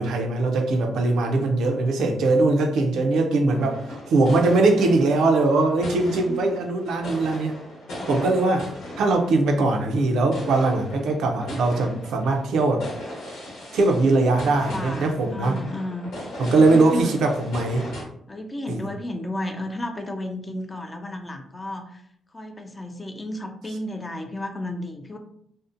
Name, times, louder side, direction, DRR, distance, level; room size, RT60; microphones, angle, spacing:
voice 1, 0.0-7.5 8.1-8.7 9.0-12.8 13.7-15.6 16.4-17.9 18.7-18.8, right 2 dB, 85° right, 3 dB, 0.4 m, -21 dB
sound 1, 3.5-18.0, left 1 dB, 85° left, 0.9 m, -38 dB
voice 2, 6.2-6.6 14.2-16.1 16.4-17.2 18.3-22.0 22.3-25.2, left 1 dB, 20° left, 5 dB, 0.3 m, -33 dB
2.6 x 2.1 x 2.5 m, 0.69 s
cardioid pair, 105°, 0 cm